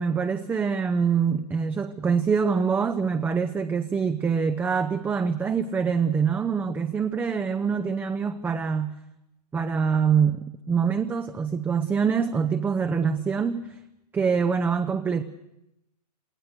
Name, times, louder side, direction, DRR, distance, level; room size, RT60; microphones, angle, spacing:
voice 1, 0.0-8.9 9.5-13.8 14.1-15.2, right 6 dB, 10° right, 9 dB, 0.7 m, -25 dB
28.5 x 18.0 x 6.8 m, 0.89 s
figure-of-eight pair, 125°, 21 cm